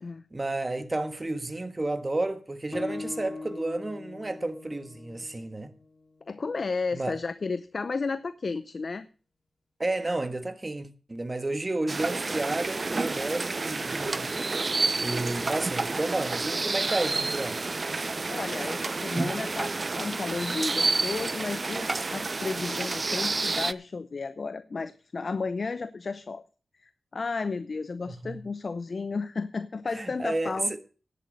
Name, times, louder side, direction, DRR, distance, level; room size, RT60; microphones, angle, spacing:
voice 1, 0.3-5.7 6.9-7.2 9.8-14.3 15.0-17.6 28.2-28.4 29.9-30.5, right 2 dB, 35° right, 1.4 m, -31 dB
Guitar, 2.7-6.4, left 3 dB, 35° left, 4.0 m, -40 dB
voice 2, 6.3-9.1 18.3-26.4 26.8-30.8, left 4 dB, 60° left, 0.6 m, -33 dB
sound 1, 11.9-23.7, right 3 dB, 50° right, 0.5 m, -29 dB
11.0 x 8.5 x 6.5 m
cardioid pair, 40°, 0 cm